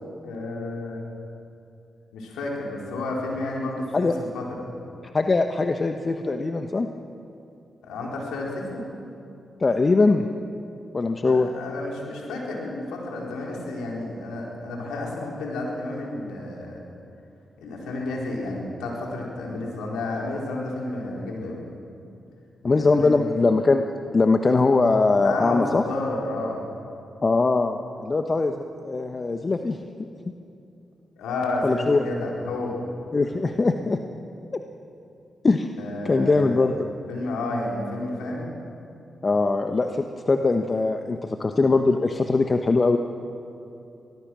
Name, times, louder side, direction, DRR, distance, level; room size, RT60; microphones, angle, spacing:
voice 1, 0.2-1.0 2.1-4.6 7.8-8.9 11.2-16.8 17.6-21.6 22.6-23.4 25.2-26.6 31.2-32.8 35.8-36.6 37.1-38.5, left 2 dB, 90° left, -2 dB, 4.0 m, -31 dB
voice 2, 5.1-6.9 9.6-10.2 10.9-11.5 22.6-23.8 24.1-25.8 27.2-29.8 31.6-32.0 33.1-34.0 34.5-34.6 35.4-35.7 36.0-36.8 39.2-43.0, left 3 dB, 40° left, 6 dB, 1.1 m, -21 dB
24.0 x 19.0 x 6.2 m, 2.7 s
supercardioid pair, 45°, 0 cm